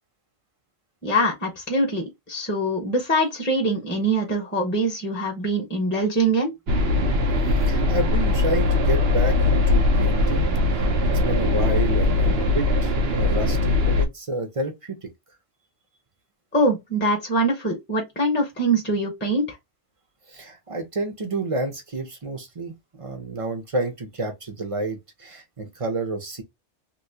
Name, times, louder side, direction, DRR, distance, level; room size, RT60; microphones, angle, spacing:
voice 1, 1.0-6.5 16.5-19.6, right 1 dB, 10° left, 1.1 m, -23 dB
sound 1, 6.7-14.1, left 2 dB, 60° right, 1.0 m, -20 dB
voice 2, 7.4-10.5 11.0-15.1 20.3-26.4, right 2 dB, 30° right, 0.9 m, -30 dB
3.1 x 2.9 x 2.8 m
omnidirectional pair, 1.2 m